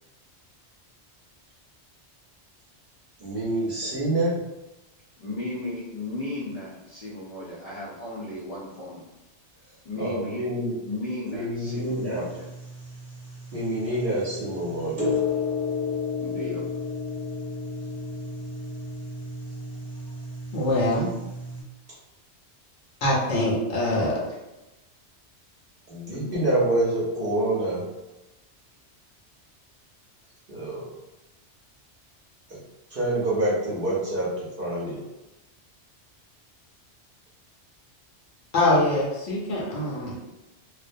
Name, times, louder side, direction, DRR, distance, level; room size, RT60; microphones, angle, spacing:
voice 1, 3.2-4.4 10.0-10.7 11.3-12.2 13.5-15.1 25.9-27.8 30.5-30.8 32.5-32.6 32.9-35.0, right 1 dB, 55° right, -8 dB, 0.8 m, -27 dB
voice 2, 5.2-9.0 9.8-10.4 10.8-12.5 16.2-16.6, left 2 dB, 50° left, -9 dB, 0.5 m, -35 dB
sound 1, 11.6-21.6, left 4 dB, 10° right, 1.1 m, -33 dB
voice 3, 20.5-21.1 23.0-24.2 38.5-40.2, left 1 dB, 90° left, -4 dB, 1.0 m, -23 dB
2.4 x 2.1 x 2.5 m, 1.0 s
omnidirectional pair, 1.2 m